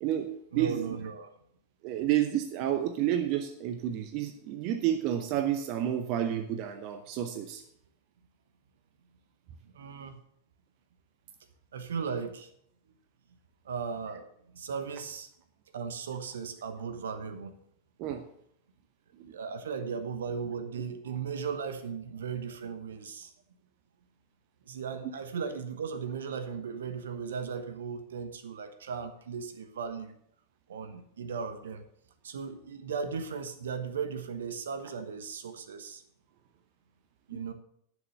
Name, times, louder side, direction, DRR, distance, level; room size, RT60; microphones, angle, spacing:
voice 1, 0.0-0.8 1.8-7.6 18.0-18.2 19.2-19.3, right 11 dB, 40° right, 8 dB, 0.8 m, -30 dB
voice 2, 0.5-1.3 9.6-10.2 11.7-12.5 13.6-15.3 15.7-17.5 19.2-23.3 24.7-30.1 30.7-31.8 32.2-36.0 37.3-37.5, right 6 dB, 65° right, 10 dB, 1.1 m, -37 dB
11.0 x 6.4 x 6.7 m, 0.71 s
figure-of-eight pair, 90°, 0 cm